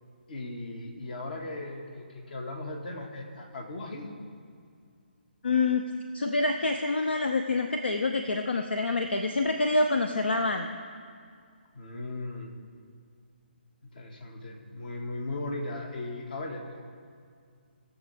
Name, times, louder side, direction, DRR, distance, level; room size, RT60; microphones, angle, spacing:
voice 1, 0.3-4.2 11.7-12.5 13.8-16.8, left 2 dB, 55° left, 2 dB, 1.9 m, -37 dB
voice 2, 5.4-5.9 6.1-10.7, left 3 dB, 70° left, 6 dB, 0.7 m, -26 dB
20.0 x 7.2 x 3.5 m, 2.2 s
figure-of-eight pair, 140°, 6 cm